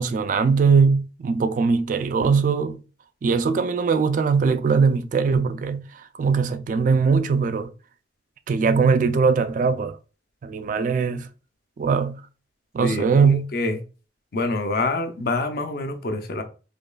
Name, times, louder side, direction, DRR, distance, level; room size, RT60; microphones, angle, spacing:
voice 1, 0.0-2.8 3.2-5.8 6.1-7.7 8.5-10.0 10.4-11.3 11.8-12.2 12.7-13.5, right 5 dB, 45° right, 0.3 m, -20 dB
voice 2, 12.8-13.8 14.3-16.4, left 2 dB, 55° left, 0.6 m, -26 dB
5.1 x 2.3 x 2.3 m
head